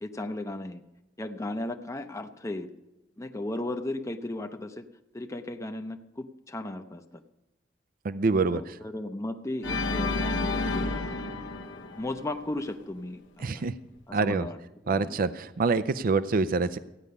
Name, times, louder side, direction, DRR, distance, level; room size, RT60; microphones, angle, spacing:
voice 1, 0.0-0.8 1.2-2.7 3.2-4.8 5.1-7.2 8.5-11.1 12.0-13.2 13.5-13.6 14.1-14.6 14.9-15.2, left 1 dB, 15° left, 6 dB, 0.6 m, -35 dB
voice 2, 8.0-8.8 13.4-13.8 14.1-14.5 14.9-16.8, right 4 dB, 50° right, 14 dB, 0.5 m, -26 dB
Organ, 9.6-12.7, left 2 dB, 85° left, 1.1 m, -30 dB
15.0 x 9.7 x 5.4 m, 0.96 s
head